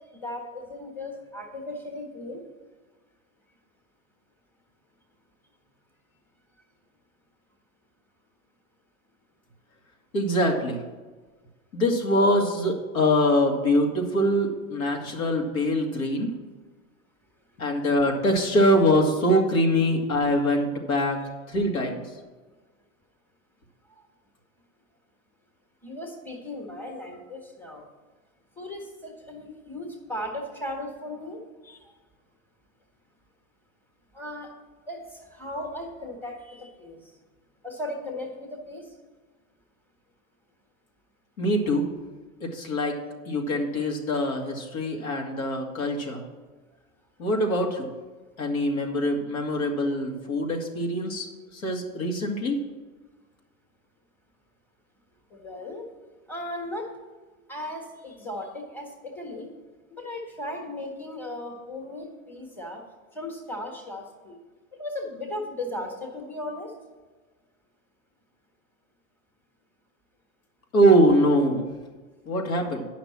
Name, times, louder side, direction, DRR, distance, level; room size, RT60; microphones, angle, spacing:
voice 1, 0.1-2.4 23.9-24.1 25.8-27.9 28.6-31.9 34.1-34.5 34.8-37.1 37.6-38.9 55.3-55.9 56.3-56.9 57.5-59.5 59.9-62.8 63.1-64.4 64.8-66.7, left 1 dB, 5° left, 1 dB, 1.5 m, -36 dB
voice 2, 10.1-10.8 11.7-16.3 17.6-21.2 21.5-22.0 41.4-41.9 42.4-43.0 43.3-46.2 47.2-47.9 48.4-51.3 51.5-52.6 70.7-71.7 72.3-72.9, equal, 85° left, 0 dB, 2.4 m, -23 dB
9.2 x 5.9 x 7.4 m, 1.3 s
hypercardioid pair, 125°, 40 cm